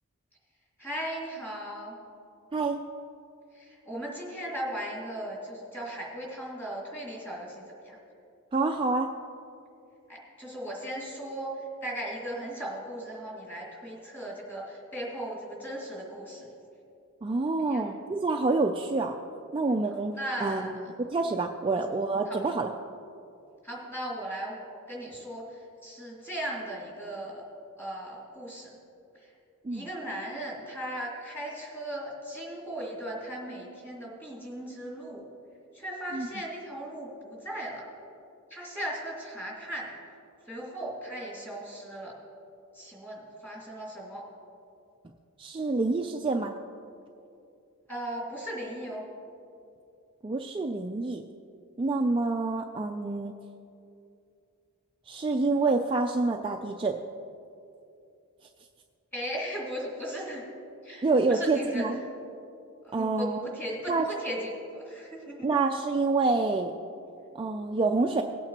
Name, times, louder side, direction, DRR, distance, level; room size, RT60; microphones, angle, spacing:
voice 1, 0.8-1.9 3.5-8.0 10.1-11.5 11.8-16.5 17.7-17.9 20.1-20.7 21.7-21.8 22.3-22.4 23.6-24.6 24.9-25.4 25.8-27.4 27.8-28.7 29.7-35.2 35.7-37.8 38.5-39.9 40.5-42.1 42.7-44.2 47.9-49.0 59.1-60.4 60.8-62.0 62.8-65.5, right 1 dB, 10° left, -5 dB, 2.6 m, -37 dB
voice 2, 8.5-9.1 17.2-19.1 19.5-20.1 20.4-20.8 21.1-22.7 29.6-29.9 36.1-36.3 45.4-46.5 50.2-51.2 51.8-53.3 55.1-56.9 61.0-62.0 62.9-63.4 63.9-64.1 65.4-66.7 67.3-68.2, right 3 dB, 25° right, 2 dB, 0.3 m, -27 dB
18.5 x 8.8 x 2.9 m, 2.6 s
head